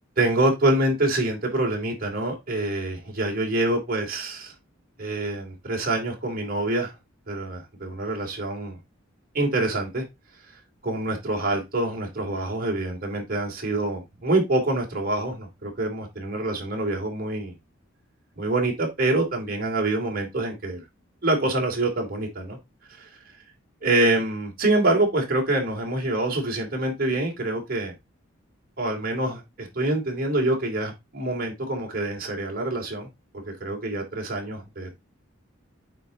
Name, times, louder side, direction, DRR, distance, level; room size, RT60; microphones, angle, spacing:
voice 1, 0.2-4.5 5.0-6.9 7.3-8.8 9.3-10.0 10.8-17.5 18.4-20.8 21.2-22.6 22.9-23.1 23.8-27.9 28.8-33.1 33.3-34.9, right 2 dB, 45° right, 2.9 m, -26 dB
8.8 x 4.1 x 3.8 m
head